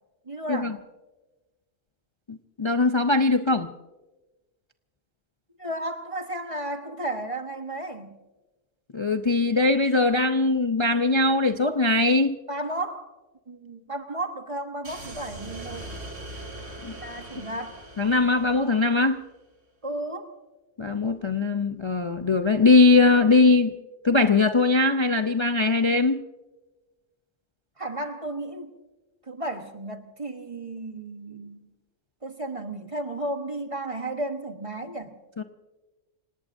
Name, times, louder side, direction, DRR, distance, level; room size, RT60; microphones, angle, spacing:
voice 1, 0.2-0.8 5.6-8.2 12.5-13.1 13.5-15.9 16.9-17.8 19.8-20.3 27.8-28.7 29.3-31.7 32.2-35.2, right 1 dB, 30° right, 5 dB, 1.2 m, -33 dB
voice 2, 2.3-3.7 8.9-12.4 16.8-16.9 18.0-19.2 20.8-23.7 24.0-26.2 35.4-35.5, left 3 dB, 35° left, 7 dB, 0.5 m, -21 dB
Decrepit Missile, 14.8-19.2, right 1 dB, 75° right, 3.5 m, -41 dB
27.5 x 18.5 x 2.6 m, 1.2 s
omnidirectional pair, 1.3 m